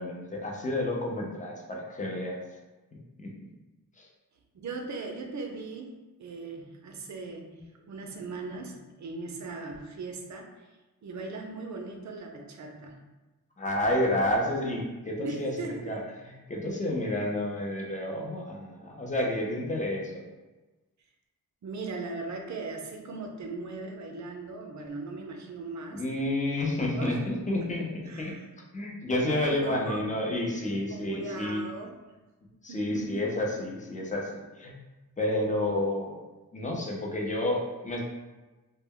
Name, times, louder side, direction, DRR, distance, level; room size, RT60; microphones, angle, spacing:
voice 1, 0.0-2.4 3.2-3.3 4.0-4.1 7.5-7.6 13.6-20.2 25.9-28.4 28.7-31.6 32.6-34.8 35.2-36.2 36.5-38.0, left 1 dB, 20° left, -1 dB, 0.5 m, -30 dB
voice 2, 4.5-5.9 6.2-7.5 7.8-10.7 11.0-13.0 15.2-16.0 21.6-26.0 27.0-27.2 27.6-27.7 28.1-28.5 29.2-30.0 30.9-31.9 32.7-33.3, right 3 dB, 50° right, 2 dB, 0.5 m, -38 dB
2.1 x 2.1 x 3.5 m, 1.1 s
wide cardioid pair, 95°, 36 cm